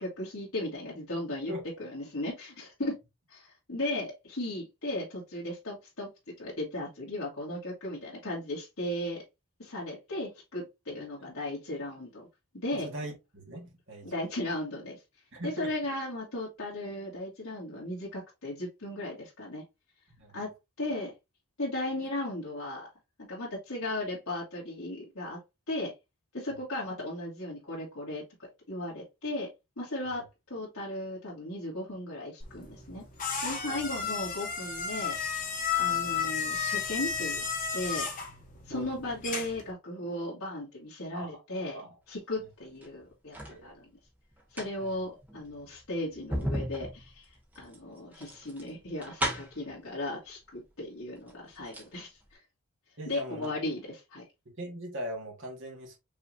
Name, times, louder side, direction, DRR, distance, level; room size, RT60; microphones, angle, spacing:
voice 1, 0.0-1.5 1.8-3.0 3.3-6.1 6.4-9.2 9.6-12.3 12.6-12.9 14.0-15.0 15.4-19.6 20.3-21.1 21.6-22.9 23.3-25.4 25.7-25.9 26.3-29.5 29.8-33.0 33.4-35.2 35.8-37.4 37.7-38.1 38.7-41.8 42.1-43.9 44.5-52.4 53.1-54.2, left 1 dB, 70° left, 2.0 m, -36 dB
voice 2, 10.9-11.3 12.8-14.1 15.3-15.7 20.2-20.3 33.6-33.8 38.7-38.9 41.1-41.4 41.7-41.9 43.5-43.7 44.8-44.9 53.0-53.5 54.4-56.0, equal, 55° right, 1.6 m, -40 dB
sound 1, 32.4-39.7, left 6 dB, 40° left, 1.3 m, -33 dB
sound 2, 42.6-43.6 44.3-49.7 50.7-50.8 51.1-51.9 52.2-52.3, equal, 5° right, 1.1 m, -36 dB
5.4 x 3.1 x 2.6 m
head